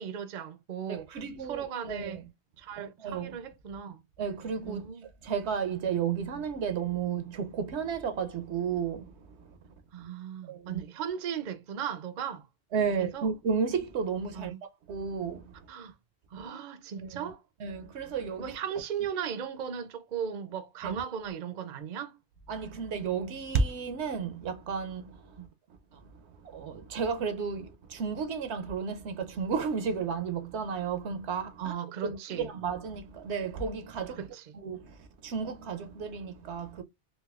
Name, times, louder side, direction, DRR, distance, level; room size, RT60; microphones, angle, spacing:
voice 1, 0.0-1.1 1.5-2.2 2.6-4.0 4.6-5.1 9.9-12.5 13.0-13.3 14.3-14.6 15.7-15.9 16.3-17.4 18.4-22.2 25.4-25.5 31.6-32.5 34.2-34.4, right 8 dB, 50° right, 0.6 m, -37 dB
voice 2, 0.9-2.2 2.8-3.4 4.2-4.9 5.2-9.6 10.5-10.8 12.7-15.7 17.0-17.3 17.6-18.5 20.8-20.9 22.5-25.5 25.9-31.8 32.0-34.2 34.5-36.8, right 6 dB, 75° right, 0.9 m, -33 dB
4.1 x 2.6 x 2.3 m
omnidirectional pair, 1.2 m